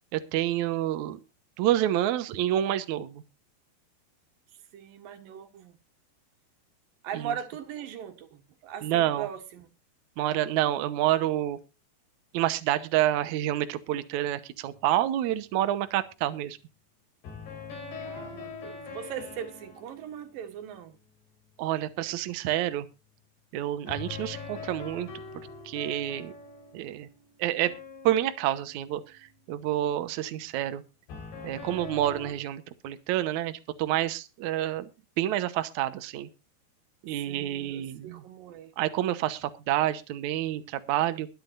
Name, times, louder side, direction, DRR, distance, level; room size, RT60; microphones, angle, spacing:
voice 1, 0.1-1.2 1.6-3.2 7.1-7.3 8.8-9.3 10.2-11.6 12.3-16.6 21.6-22.9 23.5-25.1 25.6-26.3 26.7-27.1 27.4-27.7 28.0-30.8 31.4-34.9 35.2-36.3 37.0-38.2 38.8-41.3, right 13 dB, 85° right, 1.6 m, -28 dB
voice 2, 4.7-5.8 7.0-9.7 18.0-21.0 37.3-38.7, right 9 dB, 65° right, 3.0 m, -39 dB
sound 1, 14.7-15.1 17.2-21.4 23.9-29.4 31.1-32.3, left 5 dB, 70° left, 6.2 m, -43 dB
22.0 x 9.2 x 2.5 m
omnidirectional pair, 4.9 m